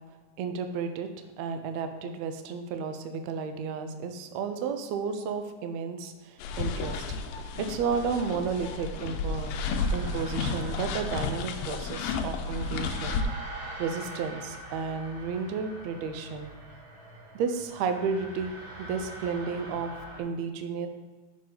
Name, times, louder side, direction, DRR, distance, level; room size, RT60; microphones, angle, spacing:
voice 1, 0.4-1.1 1.4-7.0 7.6-9.5 9.9-13.2 13.8-16.5 17.3-18.5 18.8-19.9 20.2-20.9, right 5 dB, 90° right, 7 dB, 1.5 m, -32 dB
sound 1, 6.4-13.2, left 4 dB, 85° left, 2.3 m, -32 dB
sound 2, 9.5-20.2, right 2 dB, 55° right, 1.3 m, -44 dB
6.8 x 6.6 x 3.9 m, 1.3 s
omnidirectional pair, 3.9 m